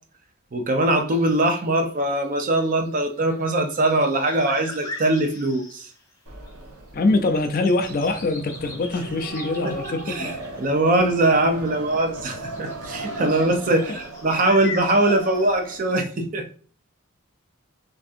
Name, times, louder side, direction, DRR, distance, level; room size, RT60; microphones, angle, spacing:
voice 1, 0.5-5.9 9.6-16.5, right 2 dB, 40° right, 5 dB, 0.5 m, -22 dB
sound 1, 1.1-6.2 6.5-6.6 7.0-11.7 12.3-16.0, left 2 dB, 15° left, 0.8 m, -41 dB
sound 2, 6.3-15.8, right 2 dB, 90° right, 0.8 m, -37 dB
voice 2, 6.9-10.3 13.2-13.3 13.9-14.0, left 2 dB, 40° left, 7 dB, 0.4 m, -24 dB
3.4 x 2.6 x 2.5 m, 0.42 s
head